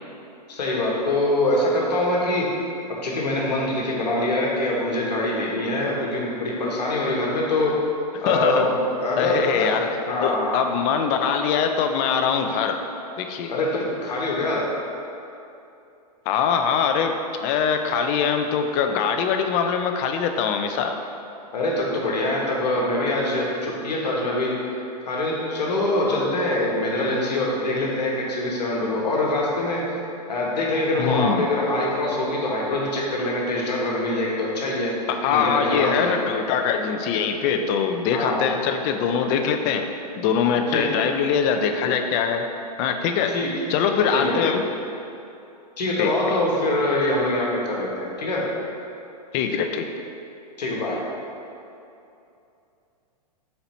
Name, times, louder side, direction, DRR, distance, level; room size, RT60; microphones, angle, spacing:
voice 1, 0.5-2.5 3.0-7.7 8.2-9.8 10.1-10.6 13.5-14.6 21.5-24.5 25.1-30.0 30.3-34.9 35.3-36.3 38.1-38.5 40.7-40.9 43.3-43.5 44.1-44.5 45.8-48.4 50.6-51.0, left 1 dB, 80° left, -3 dB, 1.1 m, -24 dB
voice 2, 8.1-8.7 9.2-9.9 10.2-12.8 13.2-13.6 16.3-17.1 17.4-21.0 31.0-31.4 35.1-39.8 40.2-42.4 42.8-43.3 43.7-44.6 46.0-46.4 49.3-49.9, left 7 dB, 35° left, 5 dB, 0.3 m, -23 dB
4.1 x 2.9 x 4.2 m, 2.7 s
hypercardioid pair, 115°, 21 cm